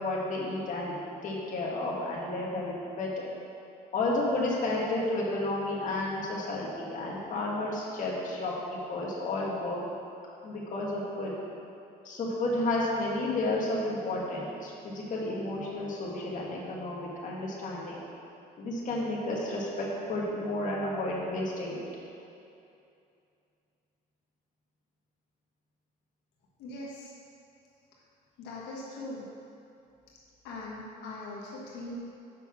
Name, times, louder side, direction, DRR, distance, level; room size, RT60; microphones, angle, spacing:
voice 1, 0.0-3.3 3.9-9.8 10.4-11.3 12.0-18.0 18.6-21.8, left 2 dB, 50° left, -4 dB, 1.8 m, -32 dB
voice 2, 26.6-27.1 28.4-29.2 30.4-32.0, left 2 dB, 85° left, -4 dB, 1.4 m, -41 dB
6.8 x 5.7 x 6.0 m, 2.6 s
cardioid pair, 110°, 17 cm